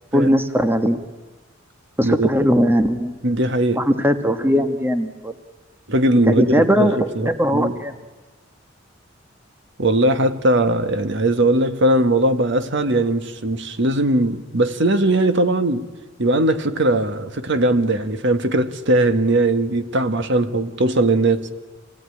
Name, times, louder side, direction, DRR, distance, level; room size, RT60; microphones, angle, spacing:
voice 1, 0.1-1.0 2.0-3.2 3.7-5.3 6.3-7.9, equal, 10° right, 1.3 m, -19 dB
voice 2, 3.2-3.8 5.9-7.7 9.8-15.8 16.2-21.5, right 1 dB, 65° right, 1.6 m, -19 dB
27.0 x 18.0 x 9.9 m
head